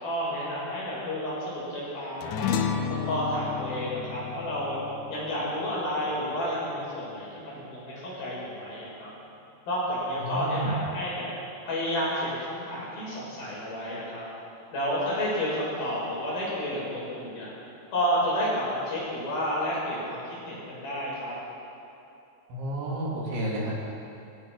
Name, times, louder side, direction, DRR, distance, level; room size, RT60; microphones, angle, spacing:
voice 1, 0.0-2.5 3.1-4.8 5.1-9.1 9.7-11.3 11.7-14.2 14.7-17.5 17.9-21.3, equal, 55° left, -6 dB, 8.6 m, -30 dB
sound 1, 2.2-6.9, left 7 dB, 90° left, 1.8 m, -32 dB
voice 2, 10.2-10.8 22.5-23.7, right 1 dB, 75° right, -4 dB, 6.1 m, -30 dB
25.5 x 17.0 x 6.2 m, 2.8 s
omnidirectional pair, 5.3 m